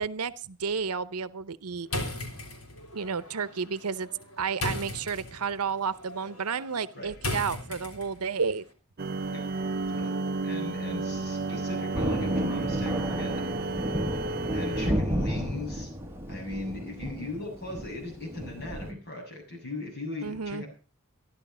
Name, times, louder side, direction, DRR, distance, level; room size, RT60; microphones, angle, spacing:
voice 1, 0.0-1.9 2.9-4.1 4.4-8.7 20.2-20.6, right 5 dB, 85° right, 16 dB, 0.8 m, -31 dB
sound 1, 1.9-8.4, left 2 dB, 70° left, 3.6 m, -37 dB
sound 2, 9.0-14.9, right 3 dB, 45° right, 0.6 m, -32 dB
voice 2, 10.4-13.4 14.5-15.9 16.3-20.7, left 2 dB, 50° left, 1 dB, 7.3 m, -38 dB
Thunder, 11.9-18.9, equal, 10° right, 1.5 m, -32 dB
14.5 x 11.5 x 5.5 m, 0.37 s
head